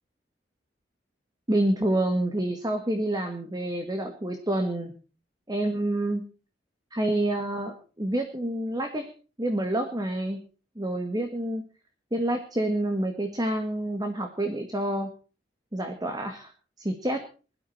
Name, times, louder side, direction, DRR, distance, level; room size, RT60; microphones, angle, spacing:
voice 1, 1.5-4.9 5.5-6.2 6.9-9.1 9.4-10.4 10.8-11.6 12.1-15.1 15.7-16.5 16.8-17.2, right 1 dB, 25° right, 5 dB, 2.0 m, -28 dB
21.0 x 13.0 x 4.3 m, 0.37 s
head